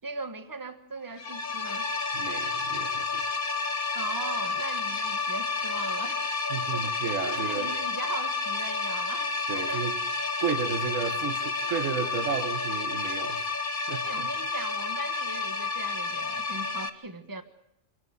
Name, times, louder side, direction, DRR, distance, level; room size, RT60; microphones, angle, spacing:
voice 1, 0.0-1.9 3.9-6.3 6.7-7.1 7.3-9.9 14.0-17.4, right 3 dB, 15° right, 1.4 m, -39 dB
sound 1, 1.2-16.9, left 4 dB, 45° left, 1.4 m, -30 dB
voice 2, 2.1-3.2 6.5-7.7 9.5-10.0 10.4-13.5 13.9-14.3, right 6 dB, 80° right, 1.6 m, -33 dB
26.5 x 12.5 x 9.5 m
omnidirectional pair, 1.3 m